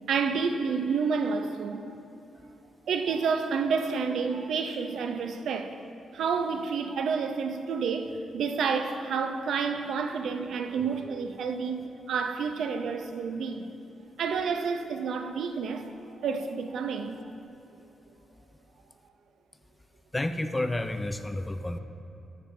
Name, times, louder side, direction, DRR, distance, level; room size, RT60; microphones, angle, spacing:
voice 1, 0.1-1.8 2.9-5.9 6.1-13.7 14.2-17.3, right 5 dB, 75° right, 0.5 m, -29 dB
voice 2, 20.1-21.8, left 1 dB, 10° left, 0.3 m, -30 dB
13.0 x 6.8 x 3.2 m
wide cardioid pair, 145°, 0 cm